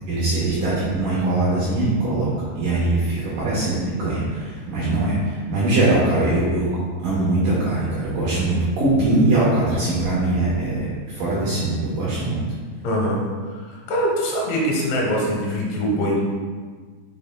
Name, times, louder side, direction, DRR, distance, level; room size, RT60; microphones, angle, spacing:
voice 1, 0.0-2.3 2.6-6.7 7.0-10.9 11.1-12.4, right 2 dB, 70° right, -8 dB, 2.0 m, -21 dB
voice 2, 12.8-13.2 13.6-16.2, equal, 90° left, -2 dB, 3.6 m, -23 dB
7.7 x 5.7 x 2.2 m, 1.5 s
omnidirectional pair, 5.1 m